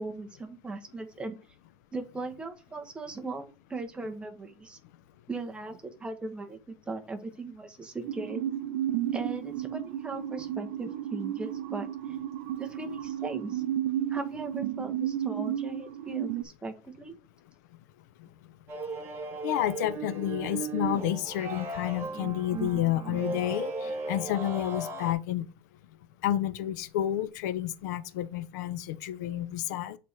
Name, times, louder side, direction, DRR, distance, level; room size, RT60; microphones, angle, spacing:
voice 1, 0.0-1.4 1.9-4.8 5.3-8.4 9.1-12.2 12.6-13.6 14.1-17.2, right 3 dB, 10° right, 0.9 m, -38 dB
sound 1, 8.0-16.4, right 11 dB, 75° right, 0.7 m, -33 dB
sound 2, 18.7-25.1, right 3 dB, 25° right, 1.5 m, -36 dB
voice 2, 19.4-25.4 26.2-30.0, left 12 dB, 90° left, 0.7 m, -30 dB
7.8 x 4.2 x 3.2 m
cardioid pair, 155°, 9 cm